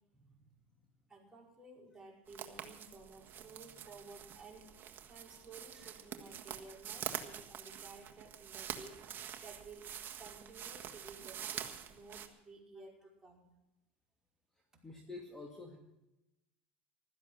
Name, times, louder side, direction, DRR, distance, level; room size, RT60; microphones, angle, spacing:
voice 1, 1.1-4.8 5.1-9.9 10.2-13.4 14.7-14.8, right 3 dB, 10° right, -3 dB, 5.1 m, -55 dB
sound 1, 2.3-12.3, right 9 dB, 40° right, 1.7 m, -46 dB
voice 2, 14.8-15.8, left 3 dB, 10° left, 1 dB, 2.3 m, -49 dB
15.5 x 12.5 x 6.3 m, 0.93 s
hypercardioid pair, 95°, 5 cm